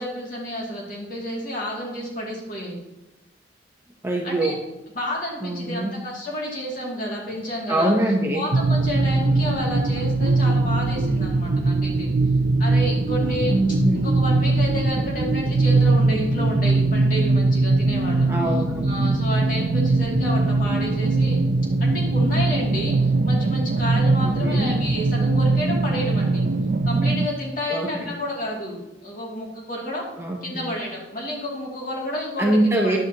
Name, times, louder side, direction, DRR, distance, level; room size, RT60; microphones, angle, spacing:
voice 1, 0.0-2.8 4.2-4.6 4.9-7.9 8.3-12.1 12.6-13.8 14.0-18.3 18.8-21.4 21.8-26.5 26.9-30.0 30.4-32.6 32.8-33.0, equal, 45° left, -3 dB, 2.5 m, -30 dB
voice 2, 4.0-4.6 5.4-5.9 7.7-8.4 13.5-14.4 18.3-19.0 24.2-24.7 27.7-28.1 30.2-30.7 32.4-33.0, right 1 dB, 15° right, -1 dB, 0.9 m, -24 dB
sound 1, 8.5-27.3, right 3 dB, 50° right, 0.5 m, -21 dB
11.0 x 8.8 x 2.9 m, 0.99 s
head